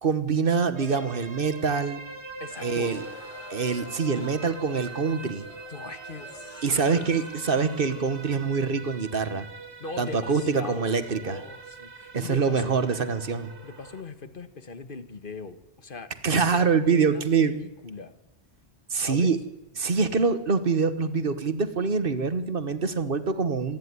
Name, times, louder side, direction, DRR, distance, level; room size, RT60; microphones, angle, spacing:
voice 1, 0.0-2.0 2.6-3.0 3.5-5.5 6.6-9.5 10.0-11.4 12.1-13.5 16.2-17.5 18.9-19.4 19.8-23.8, right 5 dB, 55° right, 12 dB, 1.4 m, -25 dB
sound 1, 0.8-14.0, right 4 dB, 75° right, 2.2 m, -43 dB
voice 2, 2.4-2.9 5.7-7.1 9.8-12.8 13.6-18.1 18.9-19.3, left 4 dB, 50° left, 11 dB, 1.6 m, -40 dB
sound 2, 2.5-9.7, left 1 dB, 30° left, 3.4 m, -48 dB
26.0 x 11.0 x 9.6 m, 0.97 s
omnidirectional pair, 1.1 m